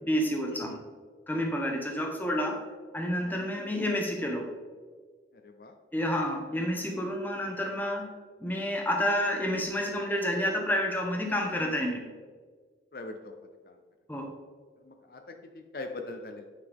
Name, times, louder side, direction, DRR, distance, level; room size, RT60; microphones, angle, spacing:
voice 1, 0.0-0.7 1.3-2.6 2.9-4.5 5.9-8.1 8.4-12.0 14.1-14.3, equal, 10° left, 1 dB, 1.1 m, -29 dB
voice 2, 12.9-13.3 14.9-15.2 15.7-16.4, left 2 dB, 55° left, 5 dB, 0.6 m, -40 dB
9.7 x 5.7 x 3.6 m, 1.5 s
head